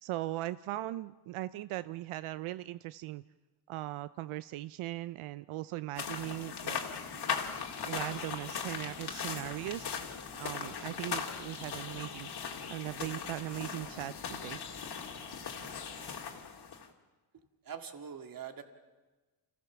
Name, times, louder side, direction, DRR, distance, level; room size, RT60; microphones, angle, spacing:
voice 1, 0.0-3.2 3.7-6.8 7.8-10.1 10.4-12.3 12.7-14.6, right 16 dB, 90° right, 15 dB, 0.6 m, -39 dB
sound 1, 6.0-16.9, left 6 dB, 55° left, 2.4 m, -39 dB
voice 2, 17.6-18.6, right 7 dB, 45° right, 6 dB, 2.1 m, -43 dB
28.0 x 15.5 x 7.2 m, 1.3 s
cardioid pair, 130°, 48 cm